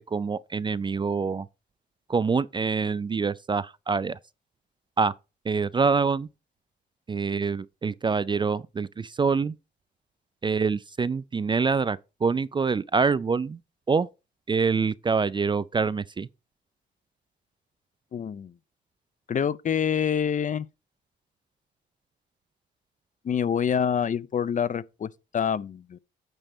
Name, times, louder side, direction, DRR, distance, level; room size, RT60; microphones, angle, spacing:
voice 1, 0.1-1.5 2.1-4.2 5.0-5.1 5.5-6.3 7.1-9.5 10.4-13.6 13.9-14.1 14.5-16.3, right 5 dB, 25° right, 0.4 m, -25 dB
voice 2, 18.1-18.5 19.3-20.7 23.2-26.0, left 8 dB, 40° left, 0.5 m, -26 dB
9.0 x 4.1 x 5.2 m
cardioid pair, 90°, 20 cm